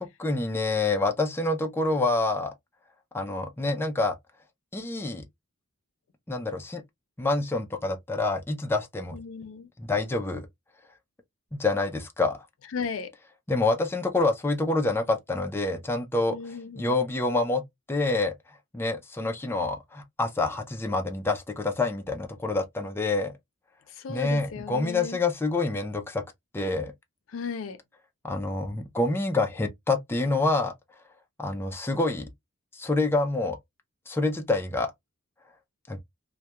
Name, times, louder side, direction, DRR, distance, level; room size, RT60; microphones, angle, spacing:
voice 1, 0.0-2.5 3.1-4.2 4.7-5.2 6.3-6.8 7.2-9.2 9.8-10.5 11.5-12.5 13.5-16.4 16.8-17.6 17.9-18.4 18.7-23.3 24.1-26.2 26.5-26.9 28.2-30.7 31.4-32.3 32.7-33.6 34.1-34.9 35.9-36.0, left 2 dB, 10° left, 0.3 m, -27 dB
voice 2, 9.1-9.7 12.7-13.1 16.3-17.0 23.9-25.2 27.3-27.8, left 5 dB, 80° left, 0.4 m, -35 dB
2.2 x 2.1 x 2.8 m
head